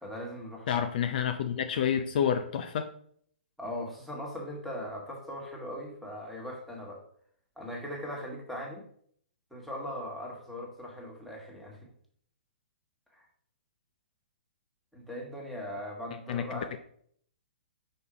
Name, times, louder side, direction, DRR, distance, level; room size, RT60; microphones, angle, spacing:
voice 1, 0.0-0.8 3.6-7.0 7.6-8.8 9.5-11.8 13.1-13.3 14.9-16.8, left 1 dB, ahead, -2 dB, 1.6 m, -39 dB
voice 2, 0.7-2.9 16.3-16.8, left 8 dB, 50° left, 7 dB, 0.6 m, -29 dB
5.3 x 4.2 x 4.9 m, 0.62 s
hypercardioid pair, 140°, 6 cm